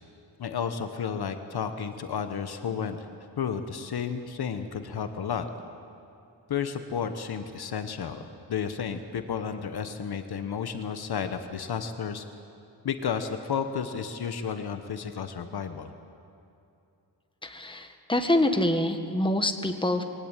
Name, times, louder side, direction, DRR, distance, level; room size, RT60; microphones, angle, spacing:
voice 1, 0.4-3.1 3.4-5.5 6.5-12.2 12.8-15.9, left 7 dB, 60° left, 8 dB, 1.2 m, -32 dB
voice 2, 17.4-20.0, left 1 dB, 10° left, 6 dB, 1.5 m, -26 dB
22.5 x 17.0 x 9.0 m, 2.7 s
wide cardioid pair, 135°, 42 cm